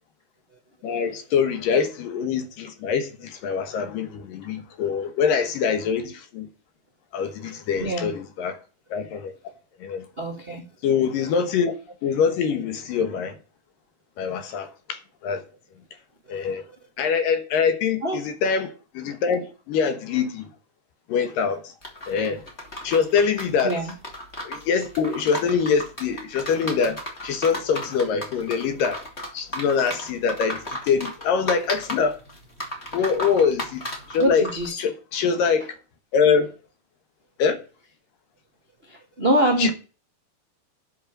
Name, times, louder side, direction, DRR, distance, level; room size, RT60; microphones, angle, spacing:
voice 1, 0.8-6.5 7.1-8.6 8.9-9.3 9.8-10.0 10.8-11.7 12.0-13.4 14.2-15.4 16.3-16.6 17.0-20.5 21.1-21.6 22.1-22.4 22.8-23.7 24.4-29.0 29.3-32.2 32.9-34.5 34.8-35.7 36.1-36.5 37.4-37.6 39.6-39.7, left 6 dB, 70° left, 2.6 m, -24 dB
voice 2, 7.2-8.1 10.2-10.6 14.4-14.5 18.0-18.2 23.6-23.9 34.2-34.8 38.9-39.7, right 1 dB, 50° right, 0.7 m, -25 dB
sound 1, 21.8-34.7, equal, 20° left, 2.3 m, -34 dB
8.9 x 6.1 x 7.4 m
omnidirectional pair, 4.5 m